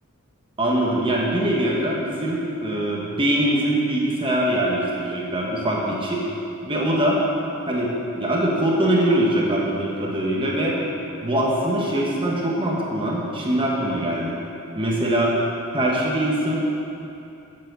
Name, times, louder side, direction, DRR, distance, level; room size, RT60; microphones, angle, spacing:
voice 1, 0.6-6.2 6.6-7.2 7.7-10.8 11.2-14.4 14.8-15.3 15.7-16.6, right 1 dB, 25° right, -4 dB, 1.3 m, -22 dB
7.7 x 7.5 x 7.7 m, 2.7 s
head